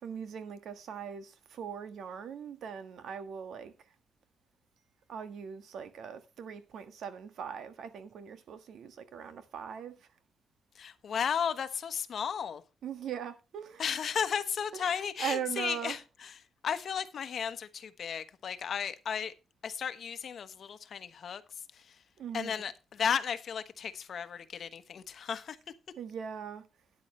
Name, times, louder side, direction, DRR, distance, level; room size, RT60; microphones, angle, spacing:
voice 1, 0.0-3.7 5.1-10.0 12.8-13.9 14.7-16.0 22.2-22.6 26.0-26.6, right 8 dB, 75° right, 1.5 m, -40 dB
voice 2, 10.7-12.6 13.8-16.4 16.6-19.3 19.6-21.4 21.7-22.0 22.3-25.6, left 7 dB, 60° left, 1.1 m, -34 dB
12.5 x 9.8 x 3.2 m
cardioid pair, 105°, 0 cm